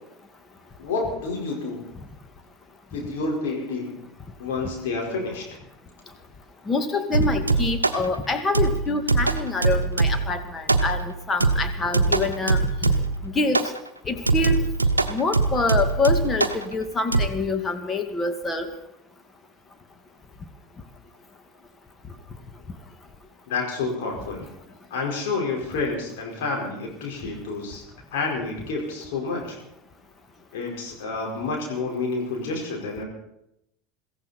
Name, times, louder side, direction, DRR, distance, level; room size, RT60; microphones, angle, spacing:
voice 1, 0.8-1.8 2.9-4.0 4.4-5.5 23.5-24.5 24.9-27.8 28.1-29.6 30.5-33.0, left 3 dB, 60° left, -1 dB, 4.7 m, -29 dB
voice 2, 6.7-12.9 13.2-13.7 14.1-14.6 15.1-18.7, left 3 dB, 20° left, 7 dB, 2.0 m, -26 dB
sound 1, 7.1-8.1 8.5-10.3 10.7-11.1 11.4-13.2 13.5-13.8 14.3-16.6 17.1-17.3, right 3 dB, 85° right, 0.8 m, -22 dB
22.5 x 14.5 x 4.3 m, 0.81 s
figure-of-eight pair, 75°, 0 cm